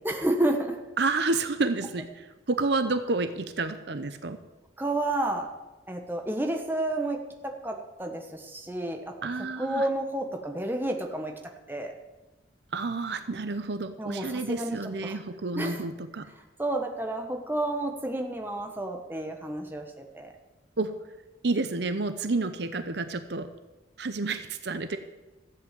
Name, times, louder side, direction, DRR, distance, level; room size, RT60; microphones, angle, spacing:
voice 1, 0.0-0.8 4.8-5.5 5.9-9.2 9.6-11.3 11.7-11.9 14.0-14.8 15.0-15.2 15.6-15.8 16.6-20.3, right 1 dB, 10° right, 3 dB, 1.2 m, -30 dB
voice 2, 1.0-4.4 9.2-9.9 12.7-16.3 20.8-20.9 21.4-23.5 24.0-25.0, right 3 dB, 60° right, 10 dB, 0.7 m, -30 dB
14.0 x 7.9 x 7.5 m, 1.1 s
head